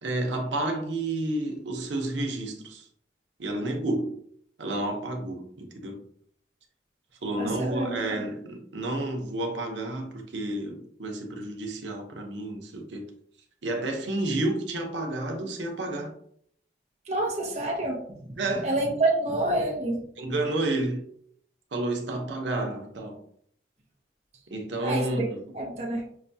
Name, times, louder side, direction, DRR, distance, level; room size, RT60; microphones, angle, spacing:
voice 1, 0.0-2.9 3.4-4.2 4.6-6.0 7.2-13.1 13.6-16.1 18.4-18.7 20.2-21.1 21.7-23.2 24.5-25.4 25.7-25.8, right 2 dB, 90° right, 0.8 m, -30 dB
voice 2, 7.4-8.0 17.1-20.0 21.9-22.0 24.8-25.2 25.5-26.1, right 2 dB, 35° right, 0.7 m, -28 dB
5.8 x 2.2 x 2.7 m
head